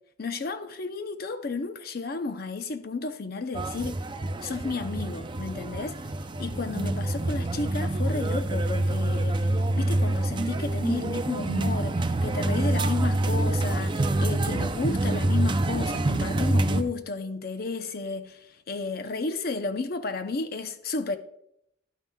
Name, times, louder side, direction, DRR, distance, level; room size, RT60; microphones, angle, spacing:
voice 1, 0.2-4.0 4.4-6.0 6.4-21.2, left 3 dB, 55° left, 0.7 m, -32 dB
sound 1, 3.5-16.8, right 1 dB, 25° right, 0.4 m, -26 dB
11.0 x 9.1 x 2.3 m
head